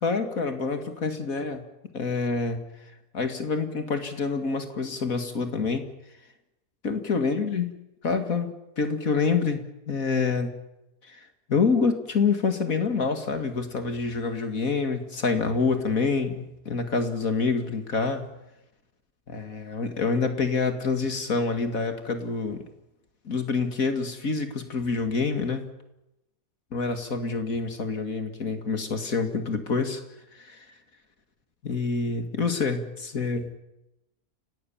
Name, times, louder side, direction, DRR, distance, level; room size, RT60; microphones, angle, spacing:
voice 1, 0.0-1.6 1.9-2.6 3.1-5.8 6.8-10.5 11.1-18.2 19.3-22.6 23.2-25.6 26.7-30.0 30.4-30.7 31.6-33.5, left 4 dB, 60° left, 8 dB, 2.6 m, -27 dB
29.5 x 18.0 x 7.2 m, 0.90 s
omnidirectional pair, 1.6 m